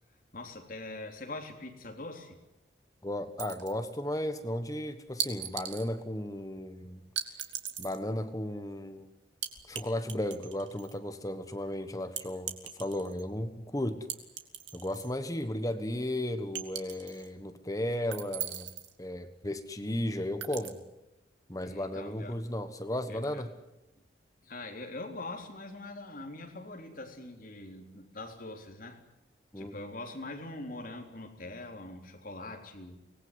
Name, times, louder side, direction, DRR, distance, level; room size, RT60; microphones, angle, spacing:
voice 1, 0.3-2.4 21.6-22.4 23.1-23.4 24.4-29.0 29.6-33.0, left 2 dB, 50° left, 3 dB, 3.7 m, -43 dB
voice 2, 3.0-7.0 7.8-9.1 9.7-14.1 14.7-18.7 19.0-20.8 21.5-23.5 29.5-29.7, left 1 dB, 20° left, 9 dB, 1.3 m, -35 dB
sound 1, 3.4-4.0 5.2-5.9 7.2-8.0 9.4-9.8 10.1-11.0 12.2-13.2 14.1-15.1 15.5-15.6 16.5-17.3 18.1-18.9 20.4-20.7, right 9 dB, 85° right, 2.6 m, -38 dB
24.5 x 19.5 x 9.6 m, 0.94 s
head